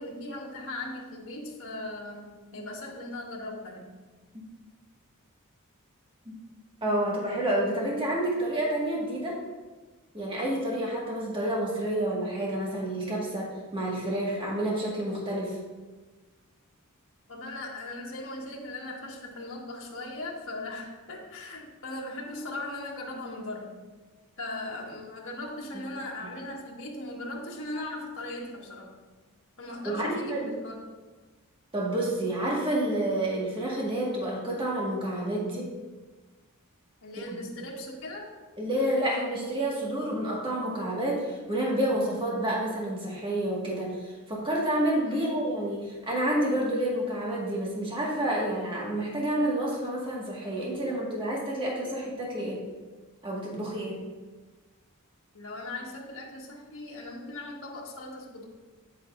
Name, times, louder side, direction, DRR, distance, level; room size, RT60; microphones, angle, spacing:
voice 1, 0.0-3.9 17.3-23.8 24.4-28.9 29.6-30.8 37.0-38.3 45.0-45.3 55.3-58.5, left 2 dB, 60° left, -2 dB, 1.5 m, -38 dB
voice 2, 6.8-9.4 10.1-15.6 29.8-30.5 31.7-35.7 38.6-44.0 44.3-52.6 53.2-54.0, right 1 dB, 25° right, -4 dB, 1.7 m, -29 dB
8.8 x 8.1 x 2.5 m, 1.3 s
head